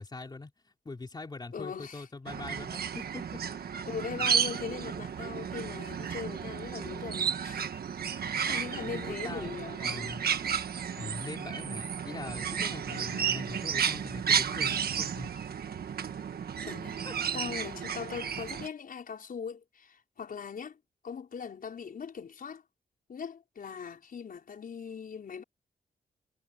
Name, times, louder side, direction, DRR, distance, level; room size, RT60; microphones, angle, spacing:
voice 1, 0.0-3.4 8.7-9.5 9.8-10.2 11.0-15.3 17.0-17.1, left 3 dB, 25° left, 3.8 m, -42 dB
voice 2, 1.5-2.1 3.9-7.6 8.1-8.2 8.5-9.8 10.4-10.6 12.9-13.3 16.6-17.0 17.3-20.8 21.0-22.6 23.1-25.4, left 6 dB, 60° left, 5.3 m, -40 dB
sound 1, 2.3-18.7, right 7 dB, 70° right, 1.4 m, -33 dB
wide cardioid pair, 150°, 16 cm